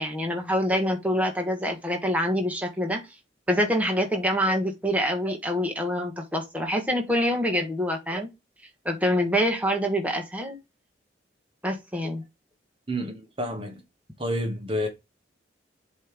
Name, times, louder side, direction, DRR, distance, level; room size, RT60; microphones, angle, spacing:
voice 1, 0.0-3.0 3.5-8.3 8.8-10.5 11.6-12.2, equal, 10° right, 1.4 m, -26 dB
voice 2, 12.9-13.8 14.2-14.9, equal, 30° right, 1.2 m, -29 dB
7.7 x 3.2 x 5.1 m
head